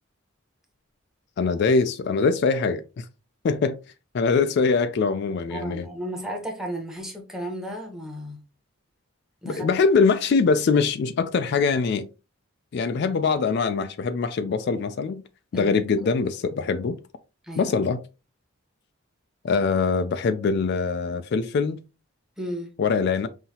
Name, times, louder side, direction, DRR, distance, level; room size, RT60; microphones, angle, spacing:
voice 1, 1.4-3.1 3.4-3.8 4.1-5.9 9.4-12.1 12.7-15.2 15.5-17.0 17.6-18.0 19.4-21.8 22.8-23.3, left 4 dB, 50° left, 0.3 m, -23 dB
voice 2, 5.5-8.4 9.4-9.7 15.5-16.1 17.4-17.7 22.4-22.8, equal, 5° right, 0.9 m, -34 dB
5.5 x 2.7 x 2.8 m
head